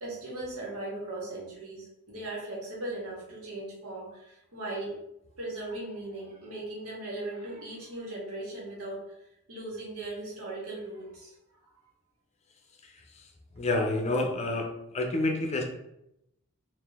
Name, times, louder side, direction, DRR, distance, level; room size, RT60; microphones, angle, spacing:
voice 1, 0.0-4.9 5.4-9.0 9.5-11.8, right 2 dB, 90° right, -4 dB, 1.5 m, -38 dB
voice 2, 13.6-14.7 14.9-15.6, left 2 dB, 30° left, 2 dB, 0.5 m, -28 dB
3.8 x 2.6 x 3.4 m, 0.83 s
head